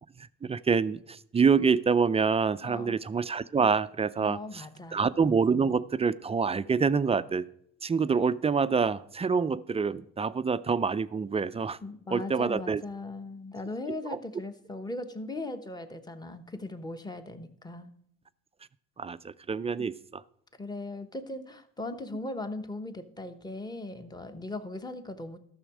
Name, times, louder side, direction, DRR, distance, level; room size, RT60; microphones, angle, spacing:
voice 1, 0.2-4.6 4.9-7.5 7.8-11.8 12.1-12.8 14.1-14.2 19.0-20.2, right 5 dB, 20° right, 15 dB, 0.3 m, -26 dB
voice 2, 2.6-3.0 4.2-5.1 11.8-17.9 20.6-25.4, left 2 dB, 10° left, 9 dB, 1.0 m, -38 dB
13.0 x 6.3 x 4.8 m, 0.73 s
cardioid pair, 90°, 33 cm